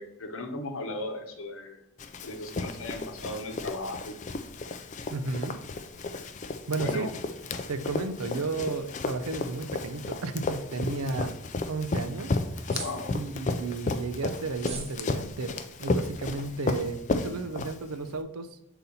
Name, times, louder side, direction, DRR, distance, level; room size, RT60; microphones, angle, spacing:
voice 1, 0.0-1.8 2.2-4.1 6.8-7.1 12.8-13.1, left 2 dB, 65° left, 4 dB, 0.9 m, -36 dB
Run, 2.0-18.1, left 3 dB, 35° left, 0.3 m, -33 dB
voice 2, 5.1-5.6 6.7-7.1 7.7-11.3 11.7-12.4 13.1-18.6, right 3 dB, 80° right, 10 dB, 0.5 m, -33 dB
sound 1, 12.6-13.3 14.5-15.0, right 4 dB, 25° right, 0.8 m, -40 dB
6.9 x 4.0 x 4.1 m, 0.78 s
head